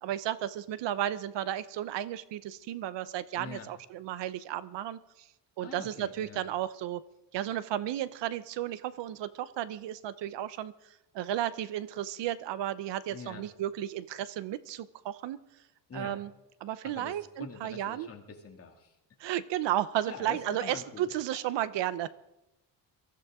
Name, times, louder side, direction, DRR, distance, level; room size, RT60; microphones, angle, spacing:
voice 1, 0.0-5.3 5.6-7.0 7.3-10.7 11.1-15.4 15.9-16.3 16.6-18.1 19.2-22.1, right 12 dB, 70° right, 15 dB, 0.8 m, -33 dB
voice 2, 3.3-3.7 5.6-6.4 13.1-13.4 15.9-16.2 16.8-18.9 20.1-21.4, left 5 dB, 30° left, 2 dB, 2.4 m, -45 dB
23.5 x 14.5 x 3.7 m, 0.90 s
cardioid pair, 160°, 44 cm